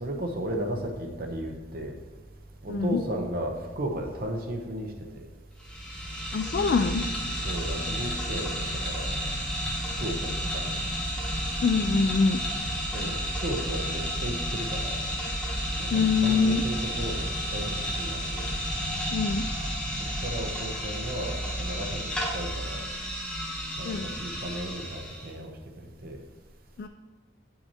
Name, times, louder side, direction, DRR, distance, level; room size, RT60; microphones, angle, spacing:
voice 1, 0.0-2.0 2.6-5.3 7.4-9.2 10.0-10.8 12.9-15.0 15.8-18.5 20.0-22.9 23.8-26.2, right 1 dB, 55° right, 3 dB, 0.8 m, -35 dB
voice 2, 2.7-3.0 6.3-7.0 11.6-12.4 15.9-16.6 19.1-19.4 23.8-24.1 26.8-26.9, left 4 dB, 55° left, 7 dB, 0.3 m, -24 dB
sound 1, 5.6-25.3, equal, 5° left, 1.2 m, -32 dB
8.7 x 5.7 x 2.8 m, 1.3 s
head